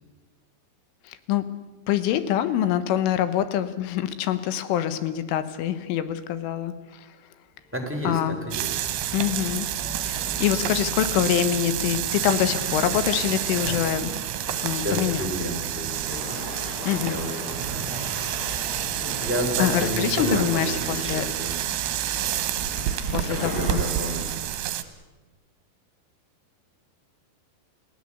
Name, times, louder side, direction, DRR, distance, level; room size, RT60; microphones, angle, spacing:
voice 1, 1.1-1.5 1.9-6.7 8.1-8.4 9.1-9.7 10.1-14.1 14.6-15.3 16.9-17.2 19.6-21.3 23.1-23.7, left 11 dB, 85° left, 12 dB, 3.8 m, -25 dB
Chatter / Hiss / Rattle, 7.6-24.5, left 1 dB, 55° left, 6.7 m, -39 dB
voice 2, 7.7-8.8 13.6-13.9 14.5-17.9 19.2-21.6 23.3-24.3, equal, 5° right, 3 dB, 2.6 m, -31 dB
sound 1, 8.5-24.8, right 12 dB, 75° right, 3.5 m, -29 dB
29.0 x 16.5 x 8.4 m, 1.2 s
omnidirectional pair, 5.6 m